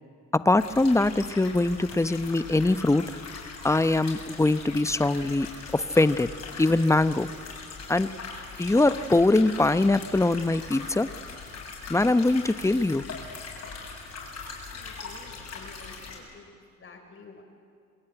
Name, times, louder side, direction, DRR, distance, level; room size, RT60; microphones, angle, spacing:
voice 1, 0.3-3.0 3.6-5.5 5.7-6.3 6.6-7.3 7.9-8.1 8.6-11.1 11.9-13.0, left 2 dB, 10° left, 13 dB, 0.9 m, -22 dB
sound 1, 0.6-16.2, left 4 dB, 60° left, 7.4 m, -41 dB
voice 2, 14.7-17.4, left 4 dB, 45° left, 4 dB, 5.2 m, -50 dB
27.5 x 21.0 x 9.1 m, 2.2 s
cardioid pair, 90°, 30 cm